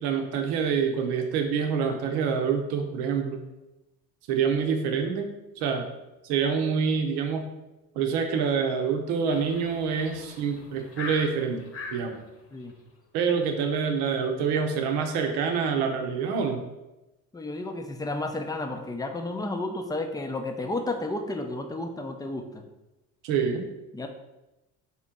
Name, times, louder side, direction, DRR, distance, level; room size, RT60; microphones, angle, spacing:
voice 1, 0.0-3.4 4.3-5.8 6.2-7.5 7.9-12.2 13.1-16.6 23.2-23.7, right 6 dB, 85° right, 4 dB, 0.8 m, -26 dB
sound 1, 9.3-12.1, left 4 dB, 40° left, 1.0 m, -40 dB
voice 2, 17.3-22.6 23.9-24.1, left 2 dB, 10° left, 5 dB, 0.5 m, -32 dB
4.1 x 2.9 x 3.6 m, 0.98 s
supercardioid pair, 85°, 37 cm